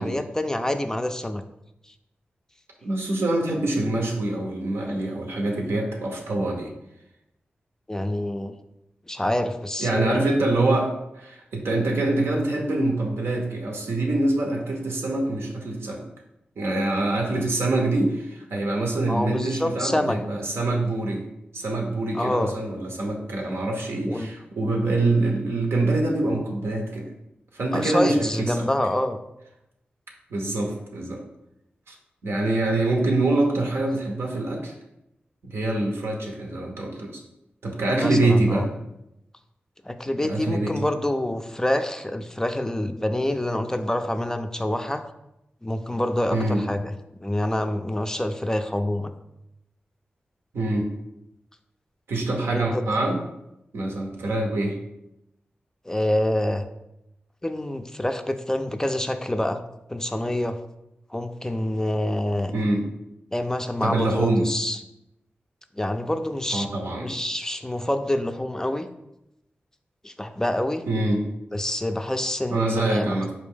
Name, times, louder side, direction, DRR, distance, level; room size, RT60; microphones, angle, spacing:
voice 1, 0.0-1.4 7.9-8.5 9.1-10.2 19.1-20.2 22.1-22.6 24.1-24.3 27.7-29.2 37.9-38.7 39.8-45.0 45.6-46.9 47.2-49.1 52.5-52.8 55.9-56.6 57.4-59.6 59.9-60.6 61.1-62.5 63.3-64.8 65.8-66.7 67.0-68.9 70.0-70.8 71.5-73.1, left 1 dB, 15° left, 7 dB, 0.3 m, -26 dB
voice 2, 2.8-6.7 9.8-16.0 16.6-21.2 21.5-27.1 27.5-28.7 30.3-31.2 31.9-32.0 32.2-34.7 35.4-37.2 37.6-38.7 40.2-40.7 46.3-46.6 50.5-50.9 52.1-53.2 53.7-54.8 62.5-62.8 63.8-64.5 66.5-67.1 70.9-71.2 72.5-73.3, right 2 dB, 85° right, 1 dB, 0.7 m, -25 dB
4.2 x 2.6 x 3.6 m, 0.87 s
cardioid pair, 45°, 4 cm